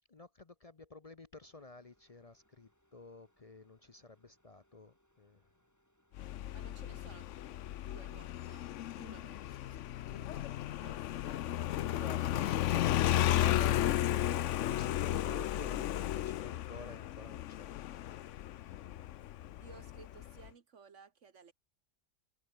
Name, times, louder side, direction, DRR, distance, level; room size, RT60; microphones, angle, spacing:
voice 1, 0.1-5.4 10.3-10.4 11.9-18.0 18.6-18.9, left 3 dB, 35° left, 0.9 m, -50 dB
sound 1, 1.4-18.4, equal, 15° left, 6.9 m, -75 dB
Motorcycle, 6.2-20.5, left 13 dB, 75° left, 1.0 m, -34 dB
voice 2, 6.5-7.3 7.7-8.7 9.0-10.5 10.8-11.4 19.6-21.5, right 6 dB, 75° right, 1.8 m, -57 dB
omnidirectional pair, 1.3 m